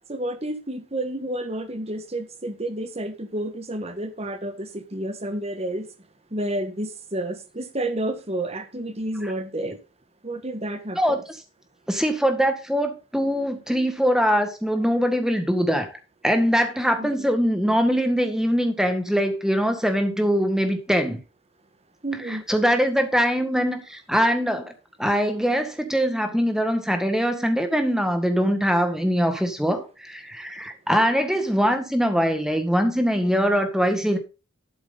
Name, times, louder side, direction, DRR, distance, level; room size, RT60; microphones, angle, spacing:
voice 1, 0.1-5.9 6.3-9.8 10.2-11.2 17.0-17.3 22.0-22.4, right 1 dB, 30° right, 1.5 m, -30 dB
voice 2, 11.9-15.9 16.2-21.2 22.3-24.7 25.0-34.2, equal, 5° right, 1.7 m, -22 dB
12.0 x 7.6 x 4.0 m
head